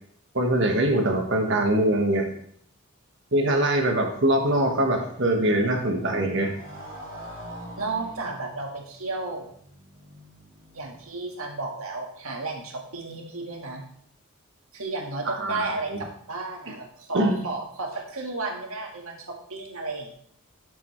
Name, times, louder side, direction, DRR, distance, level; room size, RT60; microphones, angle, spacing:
voice 1, 0.3-2.3 3.3-6.5 15.3-16.0 17.1-17.4, right 1 dB, 55° right, 3 dB, 1.4 m, -23 dB
Motorcycle, 4.0-11.5, equal, 25° right, 3.5 m, -46 dB
voice 2, 7.8-9.5 10.7-13.9 14.7-15.9 16.3-20.1, right 3 dB, 85° right, 0 dB, 1.8 m, -33 dB
9.4 x 6.9 x 3.2 m, 0.66 s
head